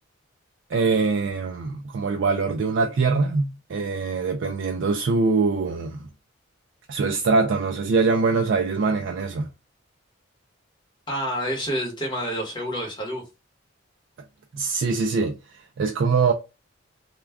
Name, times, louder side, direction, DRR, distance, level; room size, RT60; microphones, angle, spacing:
voice 1, 0.7-6.1 6.9-9.5 14.5-16.3, right 4 dB, 60° right, 0.3 m, -23 dB
voice 2, 11.1-13.2, equal, 20° left, 1.0 m, -28 dB
2.3 x 2.2 x 3.3 m
head